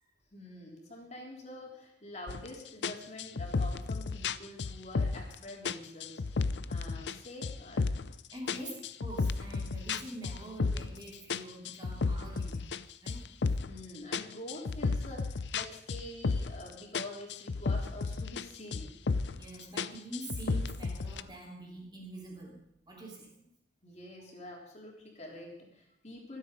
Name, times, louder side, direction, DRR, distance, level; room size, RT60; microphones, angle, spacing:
voice 1, 0.3-7.8 8.5-8.7 13.7-18.9 23.8-26.4, left 1 dB, 35° left, -1 dB, 3.5 m, -46 dB
sound 1, 2.3-2.5 2.8-5.3 5.6-7.2 7.4-8.1 8.5-11.0 11.3-13.8 14.1-16.7 16.9-18.4 18.7-19.4 19.8-21.2, left 4 dB, 65° left, 0.5 m, -33 dB
voice 2, 8.3-8.7 9.0-12.7 13.0-13.6 19.3-22.6 22.9-23.3, right 1 dB, 25° right, -1 dB, 3.0 m, -45 dB
23.5 x 8.2 x 5.3 m, 0.76 s
head